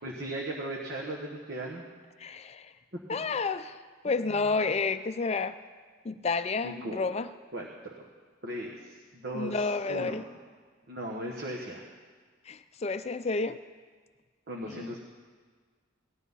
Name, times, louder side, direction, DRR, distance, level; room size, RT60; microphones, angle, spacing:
voice 1, 0.0-1.8 2.9-3.0 6.6-7.1 7.5-7.9 8.4-10.2 10.9-11.9 14.5-15.0, right 1 dB, 55° right, -1 dB, 1.4 m, -37 dB
voice 2, 2.2-2.7 3.1-3.8 4.0-5.5 6.0-7.3 9.3-10.2 12.5-13.6 14.7-14.8, left 4 dB, 30° left, 11 dB, 0.4 m, -30 dB
18.5 x 12.0 x 5.5 m, 1.5 s
head